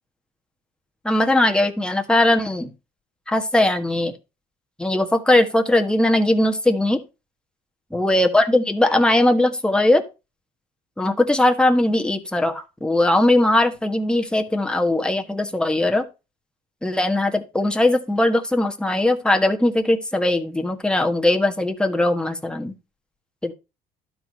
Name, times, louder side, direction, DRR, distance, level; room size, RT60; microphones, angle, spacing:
voice 1, 1.0-2.7 3.3-4.1 4.8-7.0 7.9-10.0 11.0-16.0 16.8-22.7 23.4-23.5, left 1 dB, 5° left, 4 dB, 1.5 m, -19 dB
11.5 x 4.7 x 5.5 m, 0.28 s
cardioid pair, 110°, 17 cm